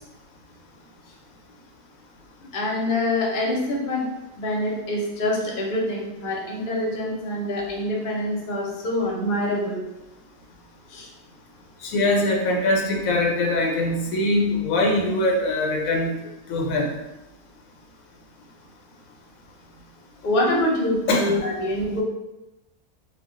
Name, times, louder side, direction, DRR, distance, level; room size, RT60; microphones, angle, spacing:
voice 1, 2.5-4.0 4.4-9.8 10.9-11.1 20.2-22.0, left 1 dB, 50° left, -3 dB, 0.7 m, -25 dB
voice 2, 11.8-16.1 16.5-16.9 21.1-21.3, left 1 dB, 80° left, 0 dB, 1.0 m, -22 dB
2.3 x 2.2 x 3.6 m, 0.97 s
omnidirectional pair, 1.4 m